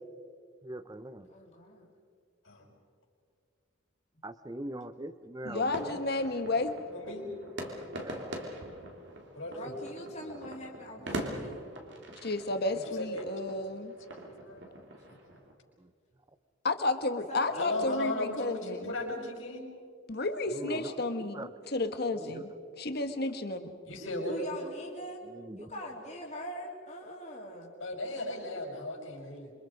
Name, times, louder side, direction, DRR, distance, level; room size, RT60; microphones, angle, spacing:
voice 1, 0.6-1.3 4.2-6.0 8.0-8.4 11.0-11.2 11.4-11.6 15.8-15.9 20.5-20.9 21.2-21.5 22.2-22.5 25.2-25.9, right 1 dB, 20° right, 13 dB, 0.7 m, -42 dB
voice 2, 1.3-1.9 9.5-11.6 15.1-15.2 17.3-17.8 20.7-20.9 24.3-25.2 25.6-27.7, equal, 35° left, -3 dB, 3.0 m, -43 dB
voice 3, 5.4-6.7 12.2-13.9 16.6-18.9 20.1-22.5 22.8-23.8, left 2 dB, 50° left, 8 dB, 1.5 m, -32 dB
sound 1, 5.5-15.5, right 1 dB, 55° right, 3.0 m, -43 dB
voice 4, 6.9-7.3 9.3-9.7 12.7-13.3 14.2-14.7 17.6-19.6 23.9-24.4 27.8-29.5, left 1 dB, 75° left, 0 dB, 5.9 m, -36 dB
27.5 x 25.0 x 5.3 m, 2.1 s
head